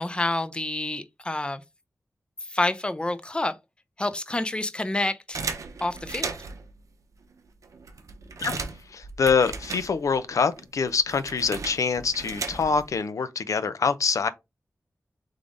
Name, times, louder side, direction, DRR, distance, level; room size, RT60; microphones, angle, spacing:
voice 1, 0.0-1.6 2.5-3.6 4.0-5.4 5.8-6.4, left 2 dB, 20° left, 0.5 m, -28 dB
sound 1, 5.3-6.7 7.3-7.4 7.6-10.3 10.6-12.9, right 4 dB, 85° right, 0.6 m, -36 dB
voice 2, 8.9-14.3, left 5 dB, 85° left, 0.5 m, -25 dB
3.6 x 3.4 x 3.8 m
wide cardioid pair, 70°, 5 cm